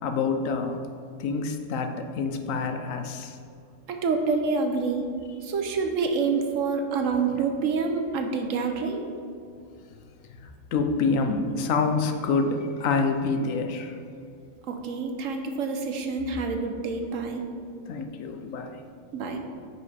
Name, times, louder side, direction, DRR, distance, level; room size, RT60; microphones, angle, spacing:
voice 1, 0.0-0.8 1.2-3.4 10.3-14.0 17.9-18.8, left 4 dB, 75° left, 6 dB, 1.1 m, -27 dB
voice 2, 3.9-5.1 5.4-9.0 14.7-17.5 19.1-19.4, right 4 dB, 70° right, 4 dB, 1.1 m, -27 dB
9.8 x 5.0 x 4.2 m, 2.4 s
omnidirectional pair, 1.4 m